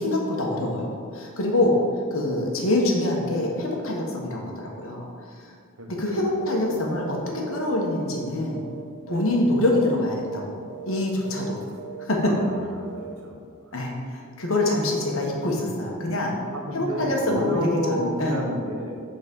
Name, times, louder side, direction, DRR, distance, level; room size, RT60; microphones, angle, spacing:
voice 1, 0.0-1.8 2.1-5.1 5.9-8.6 9.1-10.6 10.8-11.6 12.0-12.3 13.7-16.3 16.7-17.7 18.0-18.5, left 1 dB, 70° left, 0 dB, 1.3 m, -25 dB
voice 2, 5.8-7.0 9.0-9.2 11.6-11.8 12.3-13.4 13.6-13.7 16.5-19.0, equal, 80° right, -1 dB, 1.4 m, -33 dB
sound 1, 6.4-6.7 6.9-7.2 7.5-8.8 9.1-9.4 9.6-9.9 10.2-10.4 10.7-11.0 11.2-11.5 11.8-12.0 12.3-12.6 12.8-13.1, right 8 dB, 50° right, 0.6 m, -39 dB
8.4 x 4.1 x 5.3 m, 2.2 s
head